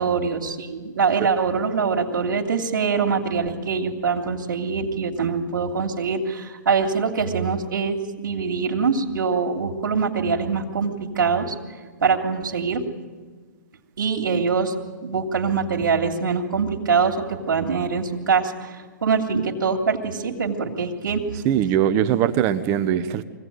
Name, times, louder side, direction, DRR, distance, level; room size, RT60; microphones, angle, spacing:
voice 1, 0.0-11.5 12.0-12.8 14.0-14.7 15.0-21.4, right 5 dB, 85° right, 2.9 m, -23 dB
voice 2, 21.4-23.2, right 10 dB, 30° right, 1.1 m, -21 dB
23.5 x 17.5 x 9.4 m
hypercardioid pair, 150°, 10 cm